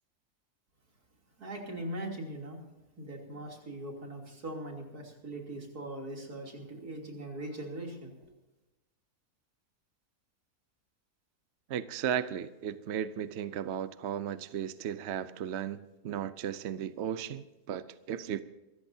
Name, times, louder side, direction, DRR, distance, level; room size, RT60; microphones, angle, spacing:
voice 1, 1.4-2.6 3.0-8.1, right 1 dB, 90° right, 0 dB, 3.6 m, -40 dB
voice 2, 11.7-18.4, right 9 dB, 55° right, 13 dB, 0.9 m, -35 dB
25.5 x 14.5 x 2.7 m, 1.0 s
omnidirectional pair, 1.6 m